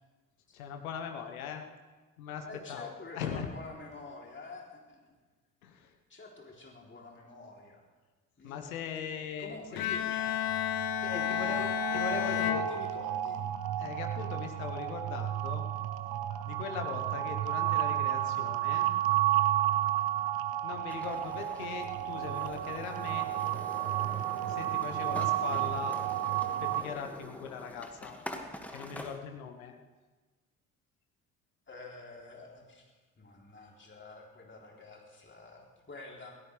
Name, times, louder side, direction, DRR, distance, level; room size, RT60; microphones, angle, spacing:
voice 1, 0.5-1.6 2.2-3.5 5.6-5.9 8.4-9.6 11.0-12.6 13.8-15.7 16.5-18.9 20.6-23.3 24.5-26.0 26.6-28.2 28.7-29.7, left 7 dB, 80° left, 5 dB, 1.4 m, -40 dB
voice 2, 2.4-5.1 6.1-7.9 8.4-8.6 9.4-10.3 11.1-13.5 31.7-36.3, left 3 dB, 25° left, -1 dB, 3.6 m, -48 dB
Bowed string instrument, 9.8-13.5, left 11 dB, 55° left, 1.0 m, -32 dB
sound 1, 10.2-26.8, right 13 dB, 60° right, 1.0 m, -32 dB
sound 2, 20.9-29.2, left 1 dB, 5° left, 2.1 m, -46 dB
22.5 x 17.0 x 3.5 m, 1.3 s
figure-of-eight pair, 45°, 42 cm